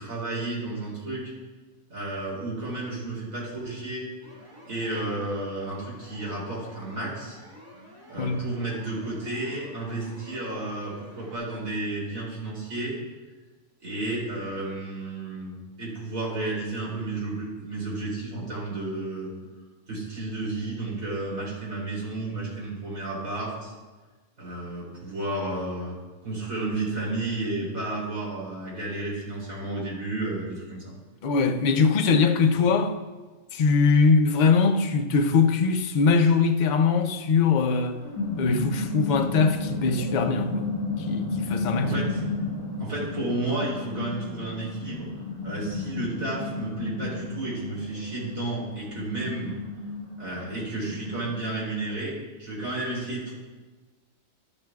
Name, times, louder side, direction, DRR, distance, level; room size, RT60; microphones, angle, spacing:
voice 1, 0.0-1.3 1.9-4.1 4.7-7.4 8.1-12.9 13.8-19.3 19.9-23.7 24.4-30.9 41.8-42.2 42.8-45.1 45.4-49.6 50.2-53.3, right 2 dB, 85° right, 3.6 m, -32 dB
sound 1, 4.2-11.4, equal, 15° right, 2.1 m, -49 dB
voice 2, 8.2-8.5 31.2-32.9 33.5-38.0 38.4-40.7 41.0-42.0, left 4 dB, 50° left, 0.6 m, -22 dB
sound 2, 37.8-51.9, left 3 dB, 25° left, 2.0 m, -33 dB
12.0 x 11.0 x 2.4 m
omnidirectional pair, 1.4 m